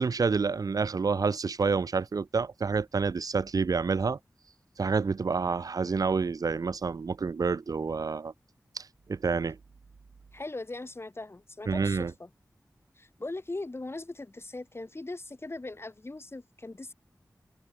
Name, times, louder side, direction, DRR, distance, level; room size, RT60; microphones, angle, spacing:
voice 1, 0.0-4.2 4.8-8.3 8.7-9.6 11.7-12.1, right 4 dB, 70° right, 0.5 m, -28 dB
voice 2, 10.3-12.3 13.0-16.9, left 2 dB, 40° left, 2.4 m, -39 dB
wide cardioid pair, 55°, 6 cm